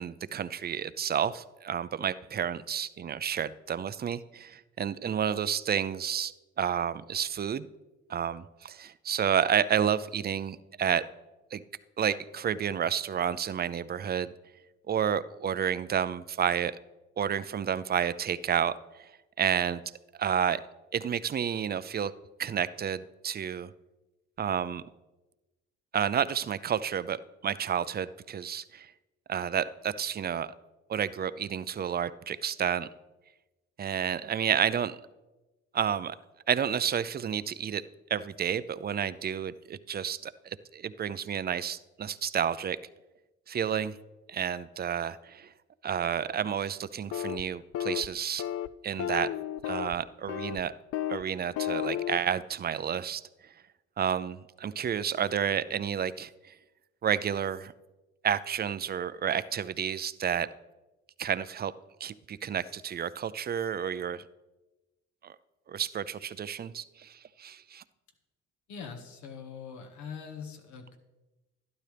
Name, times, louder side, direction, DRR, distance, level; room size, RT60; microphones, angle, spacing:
voice 1, 0.0-7.7 8.1-11.0 11.5-11.6 12.0-14.3 14.9-16.7 17.2-18.7 19.0-19.1 19.4-19.8 20.2-20.6 20.9-22.1 22.4-23.7 24.4-24.8 25.9-28.9 29.3-30.5 30.9-32.9 33.8-35.0 35.7-36.1 36.5-37.8 38.1-42.8 43.5-44.0 44.3-45.5 45.8-48.5 48.8-49.3 49.7-50.7 51.1-53.2 54.0-56.5 57.0-57.7 58.2-60.5 61.2-61.7 62.0-64.2 65.2-65.4 65.7-67.8, right 8 dB, 35° right, 16 dB, 0.5 m, -30 dB
sound 1, 47.1-47.4 47.7-48.1 48.4-48.7 49.0-50.0 50.3-50.6 50.9-51.2 51.6-52.2, left 11 dB, 55° left, 0.4 m, -32 dB
voice 2, 68.7-71.0, left 6 dB, 80° left, 5 dB, 1.6 m, -42 dB
12.5 x 11.5 x 3.4 m, 1.1 s
cardioid pair, 80°, 29 cm